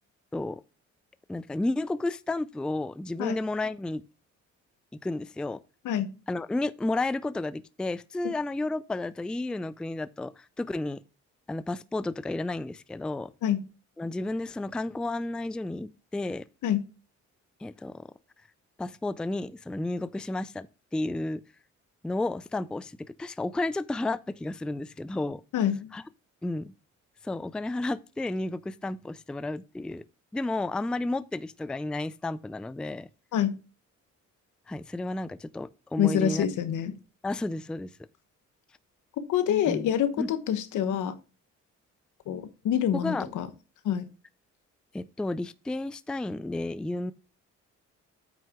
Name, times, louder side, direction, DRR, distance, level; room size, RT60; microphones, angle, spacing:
voice 1, 1.3-4.0 5.0-5.6 6.3-11.0 11.5-13.3 14.0-16.5 17.6-18.1 18.8-20.7 20.9-21.4 22.0-25.4 25.9-26.0 26.4-26.7 27.2-30.0 30.3-33.1 34.7-36.4 37.2-37.9 39.7-39.9 40.2-40.3 42.9-43.2 44.9-47.1, left 2 dB, 5° left, 0.3 m, -32 dB
voice 2, 25.5-25.9 33.3-33.5 36.0-36.9 39.3-41.1 42.3-43.5 43.8-44.1, left 9 dB, 80° left, 1.2 m, -26 dB
8.9 x 6.1 x 3.6 m
cardioid pair, 90°, 30 cm